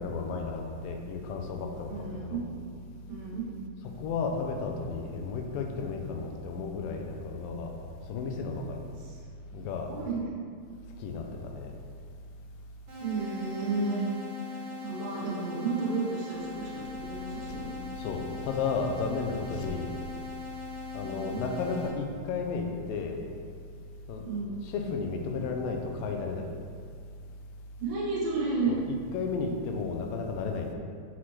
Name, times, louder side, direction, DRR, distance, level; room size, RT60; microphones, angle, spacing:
voice 1, 0.0-2.5 4.0-7.7 8.1-8.8 9.5-9.9 11.0-11.8 18.0-19.9 20.9-23.2 24.1-24.3 24.6-26.6 28.7-30.7, left 4 dB, 90° left, 3 dB, 2.3 m, -33 dB
voice 2, 1.9-2.4 3.1-3.5 9.0-9.2 9.5-10.2 13.0-14.0 14.4-17.7 21.0-21.4 24.2-24.6 27.8-28.7, right 3 dB, 80° right, -5 dB, 3.0 m, -32 dB
sound 1, 12.9-21.9, left 4 dB, 60° right, 1.7 m, -41 dB
6.1 x 5.7 x 3.2 m, 2.1 s
omnidirectional pair, 4.0 m